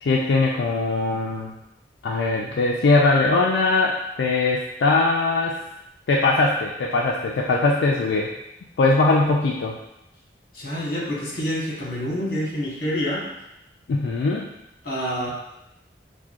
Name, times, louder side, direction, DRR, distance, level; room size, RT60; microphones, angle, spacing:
voice 1, 0.0-1.5 2.0-5.6 6.1-8.3 8.8-9.8 13.9-14.5, left 3 dB, 85° left, -1 dB, 0.4 m, -21 dB
voice 2, 10.5-13.3 14.8-15.3, equal, 50° left, -5 dB, 1.2 m, -27 dB
5.7 x 2.1 x 2.4 m, 0.85 s
head